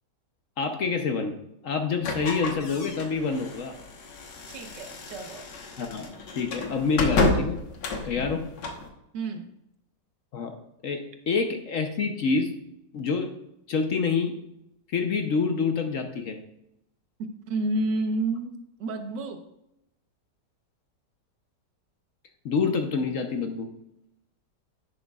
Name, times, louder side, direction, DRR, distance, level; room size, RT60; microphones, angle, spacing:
voice 1, 0.6-1.4 1.6-3.7 5.8-7.6 8.0-8.5 10.3-10.5 10.8-12.6 12.9-13.3 13.7-14.4 14.9-16.4 22.4-23.7, left 5 dB, 60° left, 5 dB, 1.0 m, -27 dB
sound 1, 2.0-8.9, left 3 dB, 85° left, 1.8 m, -30 dB
voice 2, 4.5-5.5 9.1-9.5 17.2-19.4, right 2 dB, 85° right, 5 dB, 1.6 m, -30 dB
10.5 x 8.9 x 2.3 m, 0.83 s
omnidirectional pair, 1.8 m